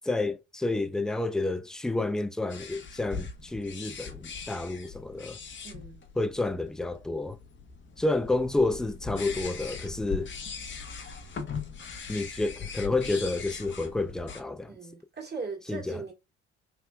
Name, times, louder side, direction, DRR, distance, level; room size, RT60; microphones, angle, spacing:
voice 1, 0.0-5.4 6.2-7.4 8.0-10.3 12.1-14.7 15.7-16.0, left 2 dB, ahead, 0.3 m, -30 dB
sound 1, 2.5-14.4, left 5 dB, 35° left, 0.9 m, -40 dB
voice 2, 5.6-6.0 14.7-16.1, right 4 dB, 30° right, 2.1 m, -39 dB
3.4 x 2.8 x 2.2 m
hypercardioid pair, 55°, 32 cm